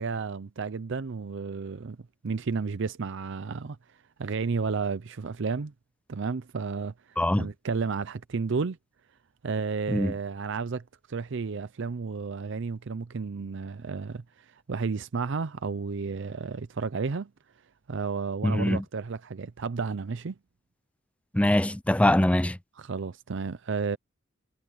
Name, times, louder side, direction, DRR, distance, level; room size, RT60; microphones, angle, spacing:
voice 1, 0.0-2.0 2.2-3.8 4.2-5.7 6.1-8.8 9.4-10.8 11.1-17.3 17.9-20.3 22.8-24.0, right 5 dB, 65° right, 0.6 m, -32 dB
voice 2, 7.2-7.5 9.9-10.1 18.4-18.8 21.3-22.6, left 1 dB, 5° left, 0.5 m, -23 dB
head